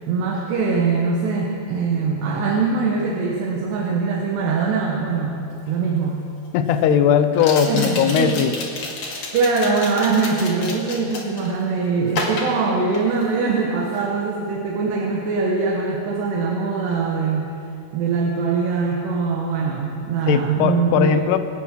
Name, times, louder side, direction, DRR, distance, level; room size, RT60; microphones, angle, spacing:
voice 1, 0.1-6.3 7.7-8.4 9.0-17.6 17.9-21.2, right 4 dB, 85° right, -1 dB, 3.4 m, -22 dB
sound 1, 5.6-5.7 7.3-11.5 12.1-13.4 13.7-14.0, left 3 dB, 50° left, 3.0 m, -30 dB
voice 2, 6.5-8.5 20.3-21.4, left 8 dB, 80° left, 9 dB, 2.9 m, -18 dB
27.0 x 9.1 x 6.0 m, 2.7 s
omnidirectional pair, 4.7 m